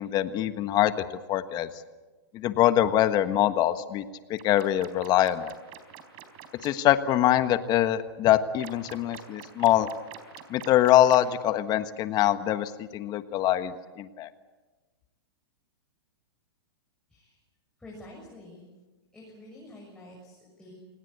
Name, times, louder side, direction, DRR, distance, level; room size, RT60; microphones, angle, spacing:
voice 1, 0.0-1.7 2.3-4.0 4.3-5.5 6.6-9.9 10.5-14.3, left 12 dB, 30° left, 11 dB, 1.4 m, -24 dB
sound 1, 4.4-6.7 8.6-11.3, right 12 dB, 40° right, 3.9 m, -45 dB
voice 2, 17.8-18.6 19.1-20.7, left 1 dB, 5° left, -4 dB, 6.7 m, -48 dB
28.0 x 19.0 x 8.4 m, 1.2 s
hypercardioid pair, 130°, 13 cm